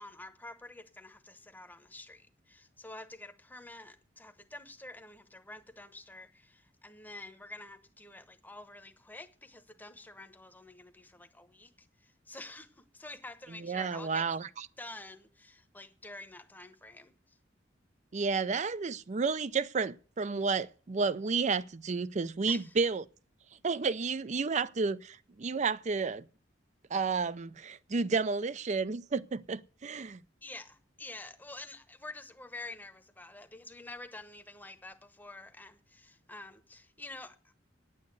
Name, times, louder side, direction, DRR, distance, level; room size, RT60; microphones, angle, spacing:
voice 1, 0.0-11.7 12.0-14.3 14.8-17.4 22.5-22.7 30.4-37.5, left 2 dB, 10° left, 0.9 m, -48 dB
voice 2, 13.5-14.7 18.1-23.0 23.6-26.2 26.9-30.2, right 4 dB, 40° right, 0.5 m, -31 dB
9.6 x 8.6 x 8.0 m
head